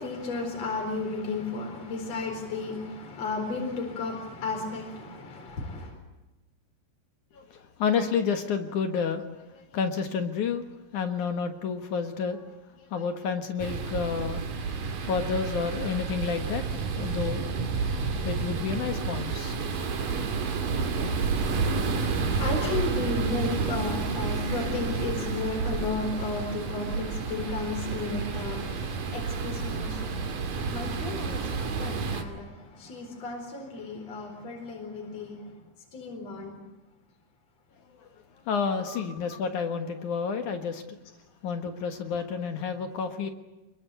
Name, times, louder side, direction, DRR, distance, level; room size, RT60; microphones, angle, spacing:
voice 1, 0.0-5.9 22.1-35.4 35.9-36.6 38.9-39.0, left 3 dB, 50° left, 2 dB, 5.3 m, -34 dB
voice 2, 7.3-9.2 9.5-10.7 10.9-12.4 12.8-17.5 17.8-17.9 18.2-19.6 38.5-40.8 41.4-43.3, left 6 dB, 65° left, 6 dB, 2.8 m, -30 dB
sound 1, 13.6-32.2, right 4 dB, 75° right, 4.2 m, -30 dB
27.5 x 22.0 x 8.4 m, 1.0 s
omnidirectional pair, 3.9 m